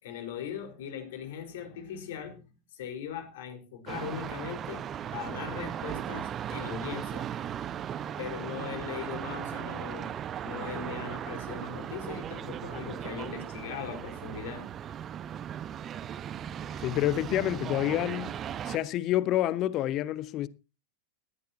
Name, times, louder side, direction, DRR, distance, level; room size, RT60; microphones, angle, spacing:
voice 1, 0.0-4.8 5.1-7.3 8.2-10.1 10.4-14.6, left 8 dB, 55° left, 4.4 m, -39 dB
sound 1, 3.9-18.8, right 9 dB, 25° right, 1.1 m, -37 dB
voice 2, 16.8-18.3 18.6-20.5, left 13 dB, 35° left, 0.8 m, -28 dB
19.0 x 14.0 x 2.8 m
figure-of-eight pair, 90°, 0 cm